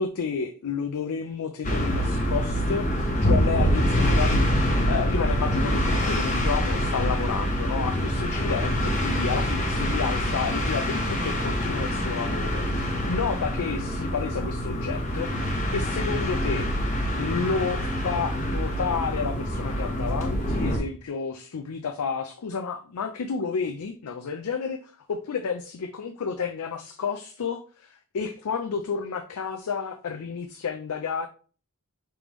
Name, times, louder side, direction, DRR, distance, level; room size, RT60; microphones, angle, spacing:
voice 1, 0.0-16.7 17.1-31.3, left 5 dB, 80° left, 7 dB, 0.5 m, -31 dB
sound 1, 1.6-20.8, equal, 35° left, 0.9 m, -25 dB
5.1 x 3.4 x 3.0 m, 0.39 s
head